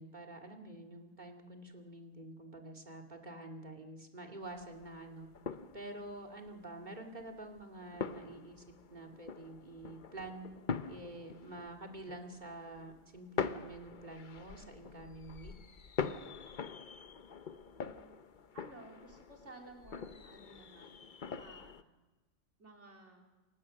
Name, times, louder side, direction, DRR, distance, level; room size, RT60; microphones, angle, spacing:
voice 1, 0.0-5.3 5.7-8.6 8.9-10.5 10.9-15.5, right 2 dB, 40° right, 3 dB, 2.4 m, -48 dB
sound 1, 4.4-21.8, left 6 dB, 45° left, 0.9 m, -44 dB
voice 2, 17.5-18.2 18.5-21.0 21.4-21.8 22.6-23.2, right 2 dB, 70° right, 2 dB, 4.0 m, -55 dB
28.5 x 16.5 x 6.5 m, 1.2 s
omnidirectional pair, 1.2 m